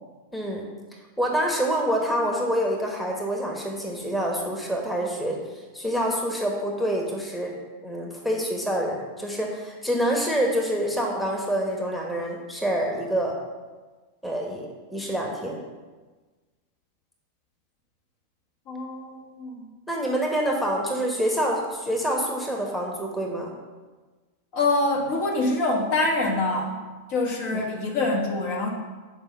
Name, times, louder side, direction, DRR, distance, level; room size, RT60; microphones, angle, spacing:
voice 1, 0.3-0.7 1.2-5.4 5.7-7.5 7.8-13.3 14.2-15.6 19.9-23.5 27.5-27.6, equal, 5° left, -1 dB, 1.3 m, -26 dB
voice 2, 18.7-19.5 24.5-26.8 27.1-28.7, left 2 dB, 45° left, -1 dB, 1.5 m, -25 dB
7.8 x 5.0 x 5.4 m, 1.3 s
figure-of-eight pair, 90°, 0 cm